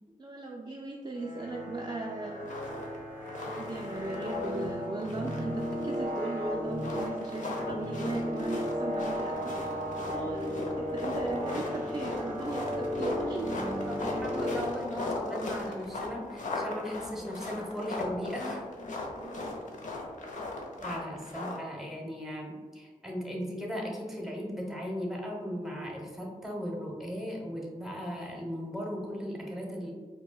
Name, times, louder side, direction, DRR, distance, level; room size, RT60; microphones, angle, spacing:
voice 1, 0.2-2.4 3.5-9.5 10.1-13.9 19.2-19.6, right 2 dB, 25° right, 0 dB, 0.4 m, -38 dB
sound 1, 1.1-15.2, equal, 15° left, 1.3 m, -35 dB
sound 2, 2.4-3.0 3.3-4.7 5.0-6.2 6.7-21.6, left 2 dB, 55° left, 0.7 m, -38 dB
voice 2, 13.9-18.7 20.8-29.9, equal, ahead, -1 dB, 0.9 m, -37 dB
4.5 x 2.2 x 2.3 m, 1.4 s
cardioid pair, 40°, 16 cm